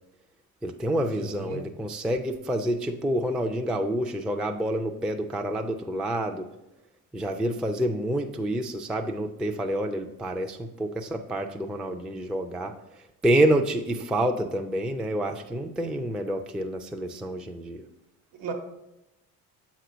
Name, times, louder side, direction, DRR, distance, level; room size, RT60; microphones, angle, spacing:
voice 1, 0.6-6.5 7.1-12.7 13.2-17.8, right 1 dB, ahead, 3 dB, 0.3 m, -28 dB
voice 2, 1.2-1.6 18.3-18.5, right 5 dB, 70° right, 4 dB, 1.1 m, -35 dB
7.6 x 3.1 x 5.0 m, 0.93 s
hypercardioid pair, 60°, 45 cm